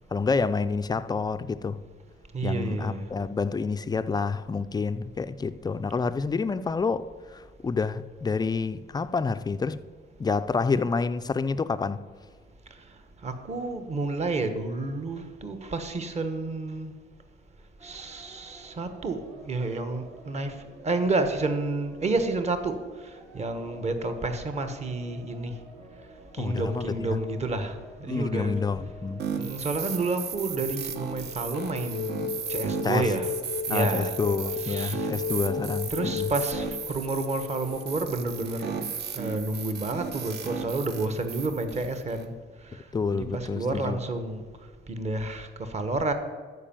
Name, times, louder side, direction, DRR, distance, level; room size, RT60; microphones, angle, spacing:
voice 1, 0.1-1.8 2.4-9.8 10.2-12.0 26.4-27.2 28.1-29.2 32.8-33.1 33.7-36.3 42.9-44.0, left 4 dB, 20° left, 0.4 m, -28 dB
voice 2, 2.3-3.0 13.2-16.9 17.8-20.5 20.8-22.8 23.3-25.5 26.3-28.6 29.4-33.3 33.7-34.1 34.6-35.1 35.9-38.8 39.1-42.3 43.1-44.4 44.9-46.1, right 2 dB, 35° right, 1.2 m, -30 dB
sound 1, 17.8-30.5, right 2 dB, 70° right, 3.6 m, -50 dB
sound 2, 28.7-29.5 31.2-38.8, left 7 dB, 80° left, 0.5 m, -36 dB
sound 3, 29.2-42.2, right 7 dB, 55° right, 0.9 m, -35 dB
12.5 x 5.2 x 8.8 m
cardioid pair, 160°, 20 cm